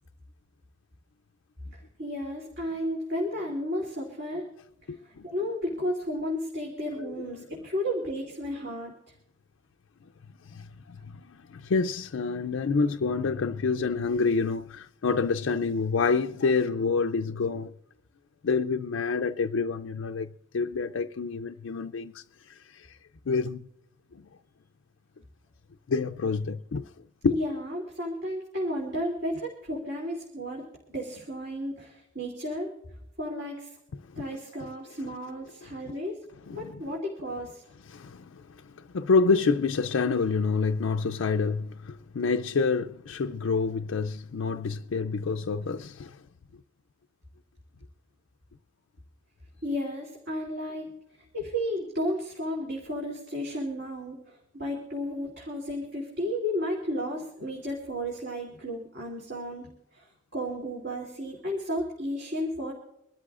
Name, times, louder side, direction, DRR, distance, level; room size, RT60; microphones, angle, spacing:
voice 1, 1.7-4.5 4.8-8.9 27.3-30.6 30.9-32.7 33.2-33.8 34.1-36.2 36.5-37.6 49.6-62.7, equal, 55° right, 3.0 m, -33 dB
voice 2, 4.9-5.2 10.5-17.7 18.4-23.0 23.3-23.7 24.1-24.2 25.9-26.8 27.2-27.4 34.1-34.2 36.5-36.8 37.9-46.2, left 4 dB, 80° left, 0.4 m, -28 dB
25.0 x 13.0 x 2.5 m
head